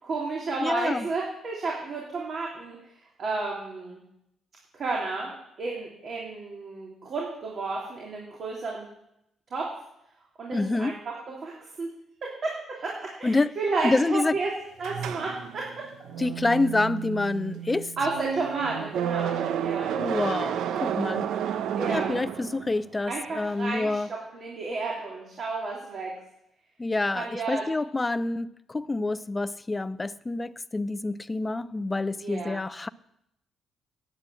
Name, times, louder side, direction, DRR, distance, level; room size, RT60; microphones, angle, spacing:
voice 1, 0.0-2.8 3.2-4.0 4.7-8.9 9.5-9.7 10.4-11.9 12.2-14.5 14.8-15.9 18.0-19.9 21.7-22.1 23.0-26.2 27.1-27.7 32.2-32.6, right 3 dB, 50° right, 3.1 m, -32 dB
voice 2, 0.6-1.1 10.5-11.0 13.2-13.6 13.8-14.4 16.2-17.9 20.0-21.3 21.9-24.1 26.8-32.9, left 2 dB, 20° left, 0.5 m, -27 dB
sound 1, 14.8-22.9, right 9 dB, 80° right, 0.8 m, -31 dB
9.7 x 9.0 x 8.4 m
cardioid pair, 90°, 0 cm